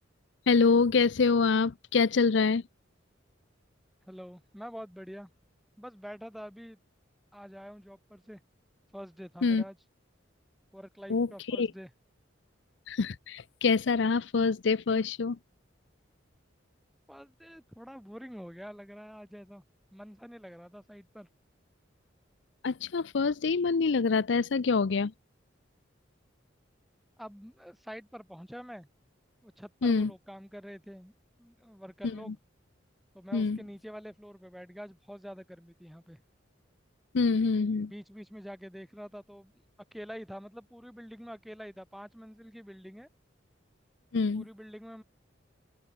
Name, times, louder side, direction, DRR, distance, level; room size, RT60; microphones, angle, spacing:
voice 1, 0.5-2.6 9.4-9.6 11.1-11.7 12.9-15.4 22.6-25.1 29.8-30.1 32.0-32.3 33.3-33.6 37.1-37.9 44.1-44.4, left 4 dB, 65° left, 0.5 m, -26 dB
voice 2, 4.1-5.3 5.8-6.8 7.3-8.4 8.9-9.8 10.7-11.9 17.1-19.6 19.9-21.3 27.2-28.9 29.4-31.1 31.4-32.4 33.1-36.2 37.8-39.6 39.9-43.1 44.3-45.0, equal, ahead, 2.8 m, -46 dB
open air
head